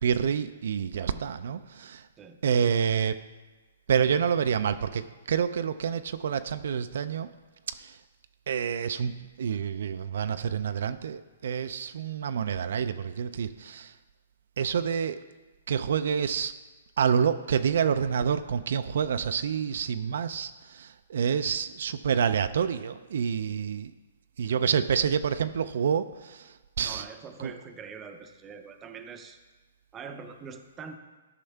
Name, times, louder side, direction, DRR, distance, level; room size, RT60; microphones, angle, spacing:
voice 1, 0.0-2.1 2.4-3.2 3.9-7.3 7.7-8.0 8.5-13.9 14.6-15.2 15.7-16.5 17.0-23.9 24.4-27.1 27.4-27.5, right 7 dB, 65° right, 11 dB, 0.4 m, -28 dB
voice 2, 26.8-29.4 29.9-31.0, right 5 dB, 15° right, 6 dB, 0.6 m, -44 dB
12.0 x 5.4 x 3.4 m, 1.2 s
hypercardioid pair, 155°, 0 cm